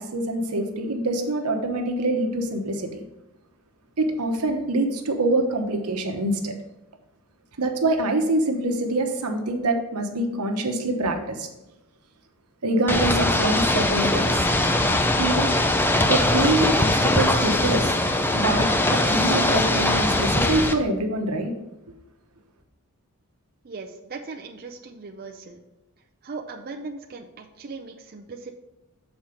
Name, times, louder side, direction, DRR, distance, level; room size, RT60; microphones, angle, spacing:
voice 1, 0.0-3.0 4.0-6.5 7.6-11.5 12.6-14.4 15.2-15.5 16.1-18.0 18.3-21.5, right 2 dB, 85° right, 4 dB, 1.0 m, -25 dB
Ocean / Boat Water vehicle, 12.9-20.7, left 1 dB, 10° left, 0.4 m, -21 dB
voice 2, 23.6-25.6 26.2-28.5, right 4 dB, 45° right, 2 dB, 0.5 m, -38 dB
7.3 x 4.3 x 5.0 m, 0.94 s
head